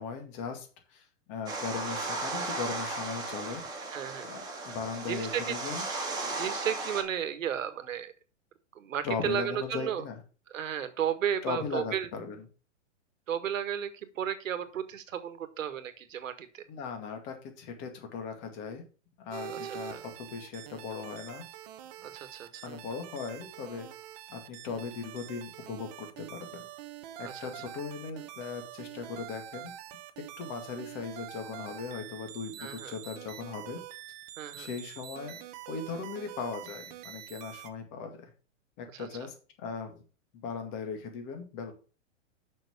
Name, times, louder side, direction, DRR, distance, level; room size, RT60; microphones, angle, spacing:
voice 1, 0.0-3.6 4.2-5.8 9.0-10.1 11.4-12.4 16.7-18.8 19.2-21.4 22.6-23.9 24.3-26.6 27.2-29.7 30.4-33.8 34.5-35.4 35.7-38.3 38.8-40.0 40.4-41.7, left 5 dB, 30° left, 5 dB, 2.2 m, -38 dB
sound 1, 1.5-7.0, right 2 dB, 10° right, 2.1 m, -36 dB
voice 2, 3.9-4.3 5.0-5.6 6.3-8.1 8.7-10.0 10.5-12.1 13.3-16.6 19.5-20.0 22.0-22.7 27.2-27.5 32.6-32.9 34.4-34.7 38.9-39.1, right 9 dB, 85° right, 10 dB, 1.7 m, -34 dB
sound 2, 19.3-37.7, right 12 dB, 30° right, 0.9 m, -45 dB
6.8 x 6.1 x 6.6 m, 0.36 s
hypercardioid pair, 155°, 38 cm